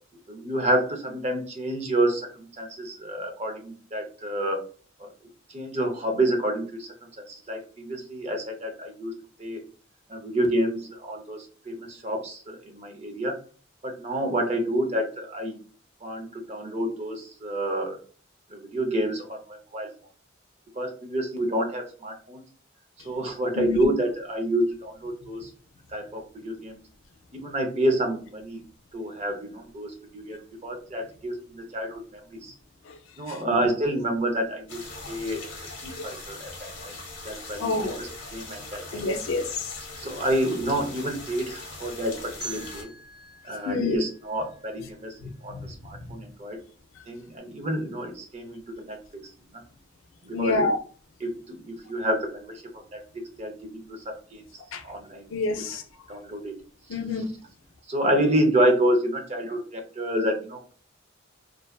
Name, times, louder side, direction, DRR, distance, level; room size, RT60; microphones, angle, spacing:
voice 1, 0.3-4.6 5.0-5.1 5.5-6.9 7.3-9.1 9.4-9.6 10.1-13.3 13.8-15.6 16.0-18.0 18.5-19.9 20.8-22.4 23.0-25.5 25.9-26.8 27.3-28.6 28.9-32.5 33.2-34.8 35.1-35.5 35.8-36.9 37.2-39.0 40.0-42.9 43.4-45.1 45.4-45.5 45.8-46.6 47.1-49.0 50.2-50.7 51.2-54.4 54.8-55.3 56.1-56.5 57.9-60.7, right 1 dB, 35° right, 0.5 m, -28 dB
voice 2, 23.6-23.9 32.9-33.0 33.3-33.4 36.0-36.1 37.6-38.0 38.9-39.7 43.7-44.0 45.2-45.7 46.0-46.1 50.3-50.8 54.7-54.8 55.3-55.8 56.9-57.3, left 3 dB, 80° left, 0.4 m, -28 dB
sound 1, 34.7-42.8, left 2 dB, 65° left, 0.9 m, -41 dB
sound 2, 42.4-45.3, right 2 dB, 5° right, 1.2 m, -44 dB
2.6 x 2.2 x 2.2 m
head